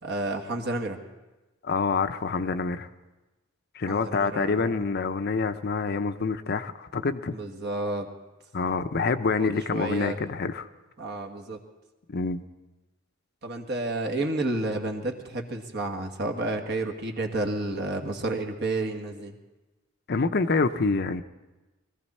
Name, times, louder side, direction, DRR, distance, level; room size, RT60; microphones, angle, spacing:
voice 1, 0.0-1.0 3.9-4.8 7.3-8.1 9.4-10.2 11.0-11.6 13.4-19.3, right 2 dB, 55° right, 4 dB, 1.6 m, -31 dB
voice 2, 1.6-2.9 3.7-7.3 8.5-10.7 12.1-12.4 20.1-21.2, left 4 dB, 50° left, 10 dB, 0.6 m, -26 dB
21.5 x 14.5 x 4.3 m, 1.1 s
head